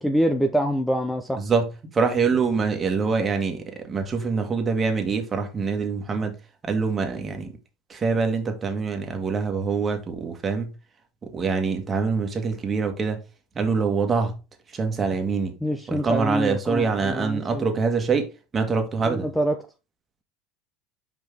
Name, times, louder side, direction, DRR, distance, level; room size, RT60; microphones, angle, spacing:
voice 1, 0.0-1.4 15.6-17.6 19.0-19.5, equal, 5° left, 0.7 m, -25 dB
voice 2, 1.4-1.7 1.9-6.3 6.6-7.5 7.9-10.7 11.2-13.2 13.5-14.3 14.7-15.5 15.9-18.3 18.5-19.3, right 5 dB, 25° right, 1.7 m, -25 dB
5.9 x 5.1 x 3.5 m
supercardioid pair, 110°, 0 cm